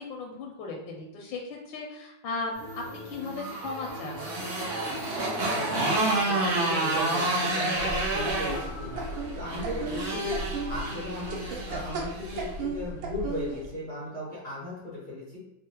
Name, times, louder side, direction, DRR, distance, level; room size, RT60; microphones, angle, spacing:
voice 1, 0.0-4.2 10.3-10.4, left 3 dB, 85° left, 1 dB, 1.3 m, -37 dB
sound 1, 2.5-11.8, equal, 25° right, 1.0 m, -42 dB
Motorcycle, 3.1-12.5, right 2 dB, 55° right, 0.7 m, -30 dB
voice 2, 5.5-9.0 9.3-15.4, left 1 dB, 60° left, -7 dB, 0.5 m, -37 dB
sound 2, 7.8-13.7, right 2 dB, 80° right, 1.4 m, -36 dB
3.6 x 2.1 x 2.8 m, 0.89 s
omnidirectional pair, 2.1 m